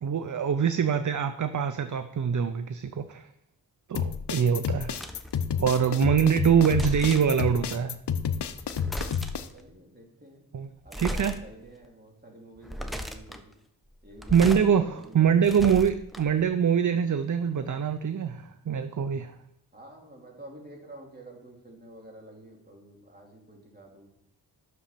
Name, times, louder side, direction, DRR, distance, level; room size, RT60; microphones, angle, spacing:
voice 1, 0.0-3.3 3.9-4.9 5.6-8.0 10.5-10.7 11.0-11.3 14.3-19.3, right 7 dB, 50° right, 11 dB, 0.6 m, -24 dB
sound 1, 3.9-9.5, left 7 dB, 80° left, 0.7 m, -30 dB
voice 2, 4.6-5.0 9.5-10.4 10.8-13.5 14.0-15.7 16.2-16.5 19.7-24.1, right 1 dB, 25° right, 0 dB, 2.9 m, -49 dB
sound 2, 4.9-5.4 6.4-7.4 8.5-9.5 10.9-11.4 11.8-11.9 12.6-13.4 14.0-14.7 15.0-16.4, equal, ahead, 1.0 m, -36 dB
10.5 x 6.4 x 5.8 m, 0.78 s
cardioid pair, 55°, 40 cm